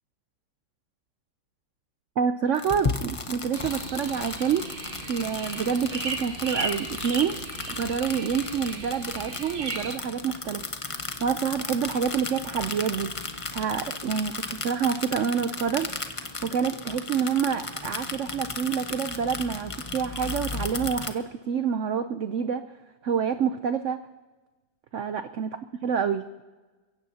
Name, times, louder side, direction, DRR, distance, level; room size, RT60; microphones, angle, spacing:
voice 1, 2.2-4.6 5.1-7.4 7.7-10.6 11.2-13.1 13.5-15.9 16.4-22.6 23.0-24.0 24.9-25.5 25.8-26.2, right 7 dB, 85° right, 10 dB, 0.6 m, -27 dB
sound 1, 2.5-21.1, left 3 dB, 40° left, 0.4 m, -35 dB
sound 2, 3.5-10.0, right 3 dB, 35° right, 1.1 m, -36 dB
30.0 x 16.0 x 2.8 m, 1.3 s
omnidirectional pair, 2.0 m